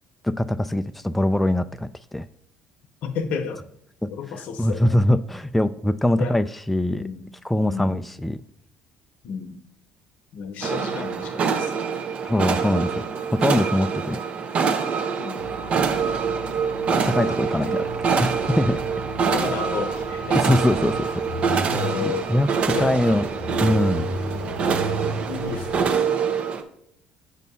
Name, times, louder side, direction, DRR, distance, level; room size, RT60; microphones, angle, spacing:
voice 1, 0.2-2.3 4.6-7.0 7.4-8.4 12.2-14.2 17.1-17.9 18.2-18.8 20.3-21.1 21.4-23.2 23.6-24.1, left 1 dB, 5° left, 10 dB, 0.3 m, -23 dB
voice 2, 3.0-3.6 4.1-5.0 6.1-6.4 6.9-7.3 7.6-8.1 9.2-9.6 10.3-11.8 15.2-15.6 17.5-17.9 19.3-20.6 21.7-22.3 22.7-23.3 24.1-24.6 25.3-25.9, left 6 dB, 70° left, 9 dB, 0.8 m, -32 dB
sound 1, 10.6-26.6, right 6 dB, 50° right, 0.7 m, -25 dB
sound 2, 15.4-25.9, right 1 dB, 90° right, 1.3 m, -35 dB
8.2 x 2.8 x 5.4 m, 0.71 s
supercardioid pair, 80°, 3 cm